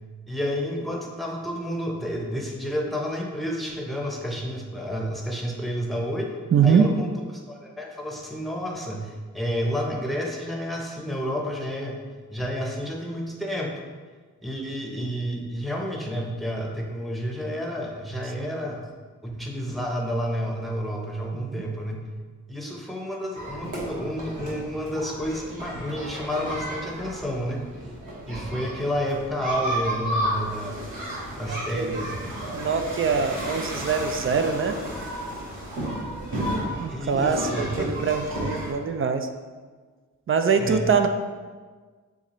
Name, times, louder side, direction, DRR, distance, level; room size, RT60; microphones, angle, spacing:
voice 1, 0.3-6.3 6.6-12.0 12.3-13.7 14.4-18.8 19.2-22.1 22.5-27.6 28.3-30.8 31.3-32.3 36.9-37.9 40.6-40.9, equal, ahead, 0 dB, 0.8 m, -30 dB
voice 2, 6.5-6.8 18.4-18.5 21.3-21.6 31.3-32.0 32.5-34.8 36.8-39.3 40.3-41.1, right 6 dB, 45° right, 7 dB, 0.4 m, -24 dB
sound 1, 23.3-38.7, right 1 dB, 85° right, 1.3 m, -33 dB
6.9 x 2.5 x 3.0 m, 1.4 s
cardioid pair, 70°, 31 cm